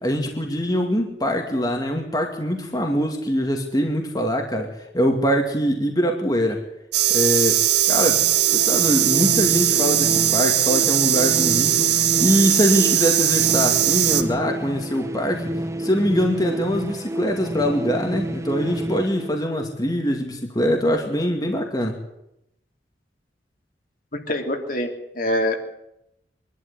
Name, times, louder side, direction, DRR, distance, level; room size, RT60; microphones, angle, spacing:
voice 1, 0.0-6.6 7.1-8.2 8.5-15.5 15.8-22.0, equal, 20° left, 2 dB, 2.4 m, -23 dB
sound 1, 6.9-14.2, right 11 dB, 70° right, 1.7 m, -19 dB
sound 2, 8.0-19.9, right 1 dB, 15° right, 1.0 m, -30 dB
voice 2, 24.1-24.9 25.1-25.6, left 1 dB, 50° left, 3 dB, 3.2 m, -24 dB
24.5 x 12.0 x 9.9 m, 0.83 s
head